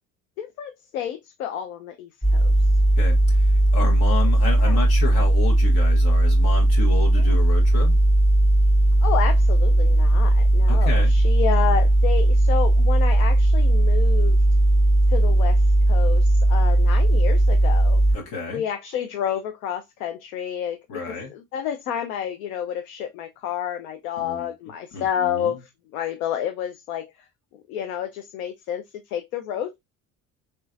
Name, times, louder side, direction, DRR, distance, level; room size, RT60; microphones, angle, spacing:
voice 1, 0.4-2.5 4.6-4.8 7.2-7.4 9.0-14.4 15.1-18.0 18.5-27.1 27.7-29.7, left 9 dB, 80° left, 0.6 m, -30 dB
sound 1, 2.2-18.2, right 1 dB, 15° left, 1.3 m, -17 dB
voice 2, 3.0-7.9 10.7-11.1 18.1-18.6 20.9-21.3 24.2-24.5 24.9-25.6, left 4 dB, 60° left, 1.1 m, -31 dB
3.3 x 3.0 x 2.4 m
hypercardioid pair, 60°, 43 cm